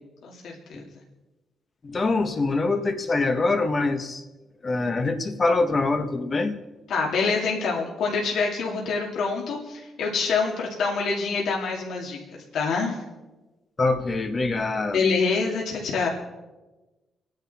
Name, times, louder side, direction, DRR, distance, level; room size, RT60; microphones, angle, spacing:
voice 1, 0.2-0.5 6.9-12.2 12.5-13.0 14.9-16.1, left 4 dB, 75° left, -2 dB, 2.6 m, -26 dB
voice 2, 1.8-4.2 4.6-6.6 13.8-15.1, left 3 dB, 30° left, 7 dB, 1.4 m, -24 dB
29.0 x 10.5 x 4.3 m, 1.1 s
cardioid pair, 135°, 0 cm